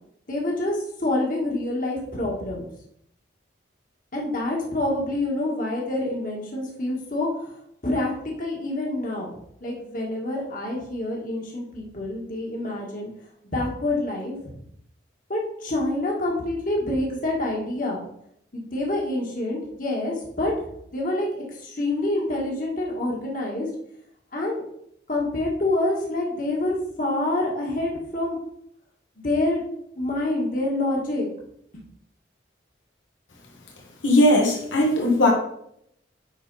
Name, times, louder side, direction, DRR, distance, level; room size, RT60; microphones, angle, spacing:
voice 1, 0.3-2.7 4.1-7.6 7.8-8.1 8.4-9.3 9.6-13.1 13.4-14.4 15.3-18.1 18.5-23.7 24.3-24.6 25.1-28.4 29.2-29.6 30.0-31.3, left 1 dB, 45° left, -2 dB, 1.8 m, -27 dB
voice 2, 34.0-35.3, left 1 dB, 85° left, 0 dB, 1.8 m, -18 dB
10.0 x 4.3 x 4.2 m, 0.73 s
head